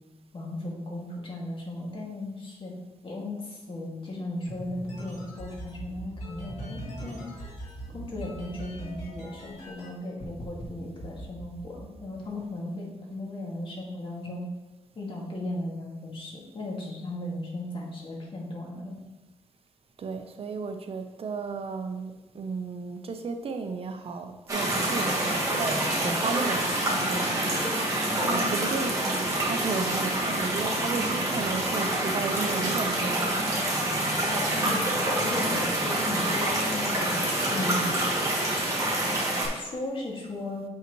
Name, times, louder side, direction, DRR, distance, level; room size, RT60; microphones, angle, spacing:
voice 1, 0.3-2.7 3.0-7.2 7.9-14.5 15.0-19.0 28.2-28.5 34.5-38.0 39.5-40.7, left 2 dB, 45° left, -3 dB, 2.1 m, -36 dB
sound 1, 4.5-9.9 10.2-10.6 11.0-12.4, right 1 dB, 80° left, 2.2 m, -40 dB
voice 2, 20.0-27.9 28.3-33.6, right 4 dB, 50° right, 6 dB, 0.8 m, -34 dB
sound 2, 24.5-39.5, right 1 dB, 25° right, 2.3 m, -27 dB
7.7 x 5.6 x 3.1 m, 1.1 s
cardioid pair, 105°, 12 cm